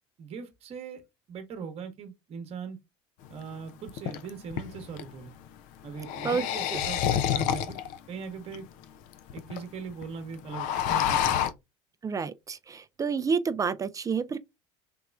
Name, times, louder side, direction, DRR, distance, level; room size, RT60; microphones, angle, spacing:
voice 1, 0.2-2.8 3.3-5.3 5.8-7.8 8.1-8.7 9.3-11.5, right 6 dB, 45° right, 1.0 m, -40 dB
sound 1, 3.2-3.3 3.9-5.1 5.9-8.0 8.5-8.6 8.8-8.9 9.1-9.6 9.9-10.0 10.3-11.5, left 10 dB, 60° left, 0.5 m, -28 dB
voice 2, 12.0-14.4, right 5 dB, 25° right, 0.3 m, -29 dB
3.5 x 2.9 x 2.3 m
hypercardioid pair, 75°, 15 cm